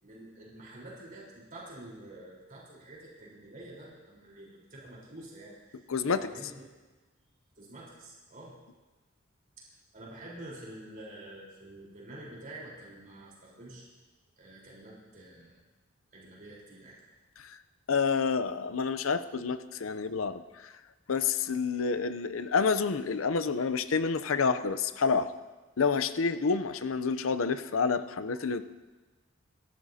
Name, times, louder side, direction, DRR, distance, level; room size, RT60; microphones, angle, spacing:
voice 1, 0.0-6.6 7.6-8.5 9.9-13.9 14.4-15.6 16.1-17.0, right 1 dB, 40° right, -5 dB, 4.1 m, -48 dB
voice 2, 5.9-6.3 17.4-17.6 17.9-20.7 21.1-25.3 25.8-28.6, left 5 dB, 70° left, 11 dB, 0.6 m, -28 dB
26.5 x 14.0 x 2.8 m, 1.2 s
head